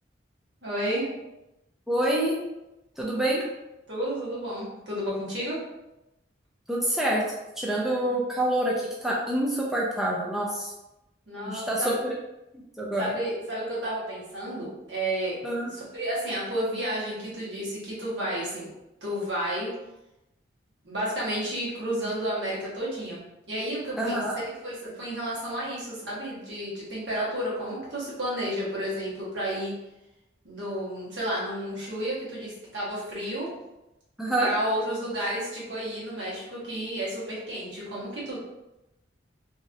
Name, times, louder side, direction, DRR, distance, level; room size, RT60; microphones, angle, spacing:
voice 1, 0.6-1.0 3.9-5.6 11.3-11.9 13.0-15.4 15.7-18.7 19.0-19.7 20.8-23.2 23.5-29.7 30.4-33.5 34.4-38.4, right 1 dB, 80° right, -7 dB, 1.3 m, -31 dB
voice 2, 1.9-2.4 3.0-3.4 6.7-10.7 11.4-11.9 12.8-13.2 15.4-15.7 24.0-24.3 34.2-34.5, right 1 dB, ahead, -4 dB, 0.3 m, -27 dB
3.0 x 2.6 x 2.5 m, 0.95 s
head